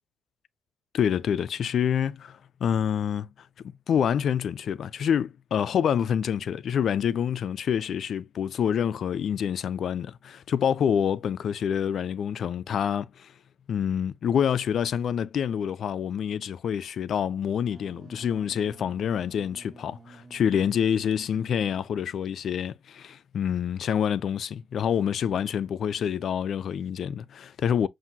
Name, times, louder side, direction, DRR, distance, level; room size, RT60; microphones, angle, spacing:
voice 1, 0.9-3.3 3.9-13.3 13.7-27.9, left 8 dB, 60° left, 0.4 m, -27 dB
Wind instrument woodwind instrument, 17.6-22.1, right 3 dB, 35° right, 1.2 m, -52 dB
7.2 x 2.6 x 2.7 m
cardioid pair, 90°, 0 cm